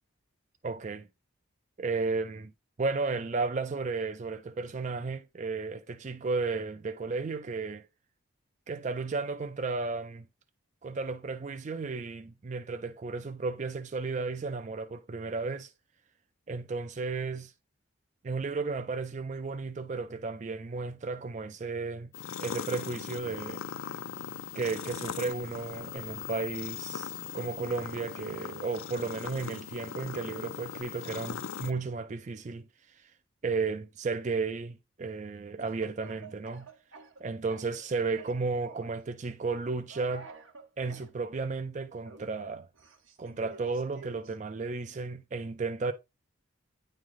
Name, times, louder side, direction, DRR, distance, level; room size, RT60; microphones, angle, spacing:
voice 1, 0.6-1.1 1.8-2.5 2.8-7.9 8.7-10.3 10.8-15.7 16.5-17.5 18.2-22.1 22.4-23.6 24.5-33.1 33.4-36.7 37.2-40.3 40.8-42.7 43.2-45.9, right 4 dB, 35° right, 0.4 m, -34 dB
sound 1, 22.1-31.7, left 7 dB, 80° left, 0.4 m, -39 dB
Speech / Cough, 35.6-37.9 38.2-39.0 39.9-41.1 42.0-44.4, right 3 dB, 70° right, 1.0 m, -50 dB
9.5 x 3.2 x 3.6 m
head